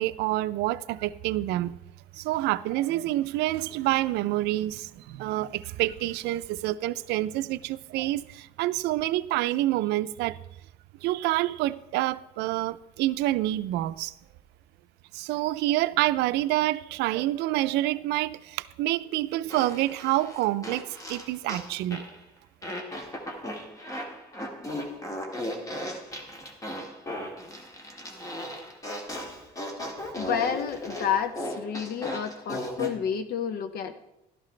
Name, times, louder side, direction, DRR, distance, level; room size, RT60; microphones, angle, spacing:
voice 1, 0.0-1.8 2.1-10.4 11.0-14.1 15.1-22.0, right 16 dB, 90° right, 0.5 m, -27 dB
Fart, 19.5-22.2 22.6-33.0, equal, 20° left, 1.7 m, -37 dB
voice 2, 30.2-33.9, left 8 dB, 70° left, 0.8 m, -30 dB
12.5 x 11.5 x 3.3 m
cardioid pair, 110°, 17 cm